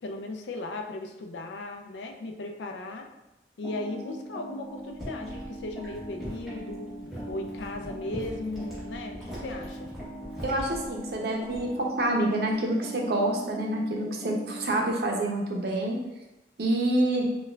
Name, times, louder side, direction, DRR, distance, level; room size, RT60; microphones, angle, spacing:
voice 1, 0.0-3.1 3.6-6.9 7.3-9.9, left 2 dB, 85° left, 4 dB, 0.4 m, -37 dB
sound 1, 3.6-14.9, right 1 dB, 25° left, 0.8 m, -41 dB
sound 2, 4.9-11.9 12.2-12.5, equal, ahead, 0.9 m, -42 dB
voice 2, 10.4-16.0 16.6-17.3, right 1 dB, 60° right, 0 dB, 0.5 m, -27 dB
4.3 x 2.2 x 2.2 m, 0.98 s
head